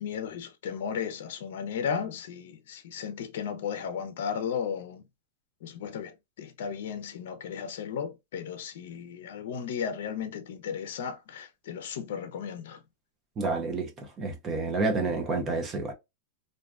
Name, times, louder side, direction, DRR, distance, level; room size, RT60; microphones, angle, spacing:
voice 1, 0.0-5.0 5.6-12.8, left 7 dB, 65° left, 0.5 m, -35 dB
voice 2, 13.4-13.9 14.2-15.9, right 3 dB, 15° right, 0.4 m, -29 dB
2.5 x 2.2 x 2.3 m
supercardioid pair, 180°, 0 cm